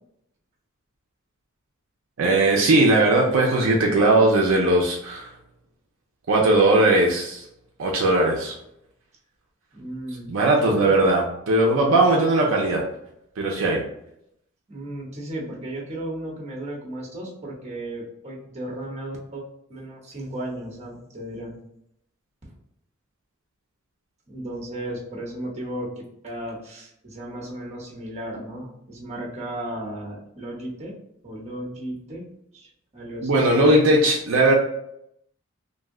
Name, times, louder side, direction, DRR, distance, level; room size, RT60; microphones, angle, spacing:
voice 1, 2.2-5.3 6.3-7.4 7.8-8.6 10.3-12.8 13.4-13.8 33.2-34.5, right 2 dB, 65° right, -1 dB, 0.5 m, -19 dB
voice 2, 9.7-10.3 10.6-11.0 14.7-19.4 19.7-21.6 22.5-22.6 24.3-25.9 26.2-30.9 31.2-32.2 32.5-33.4, right 1 dB, 30° right, -3 dB, 0.8 m, -35 dB
2.6 x 2.1 x 3.6 m, 0.76 s
head